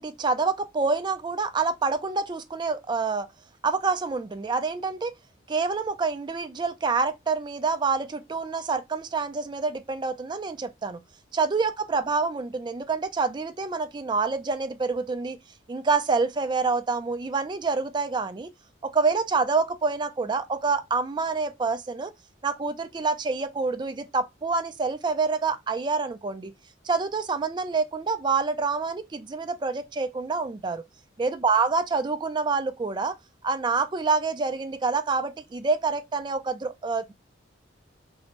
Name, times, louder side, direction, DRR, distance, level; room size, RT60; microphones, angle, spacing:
voice 1, 0.0-3.3 3.6-5.1 5.5-11.0 11.3-15.4 15.7-18.5 18.8-22.1 22.4-26.5 26.8-30.8 31.2-33.1 33.4-37.1, right 4 dB, 25° right, 0.3 m, -27 dB
2.7 x 2.1 x 2.8 m
head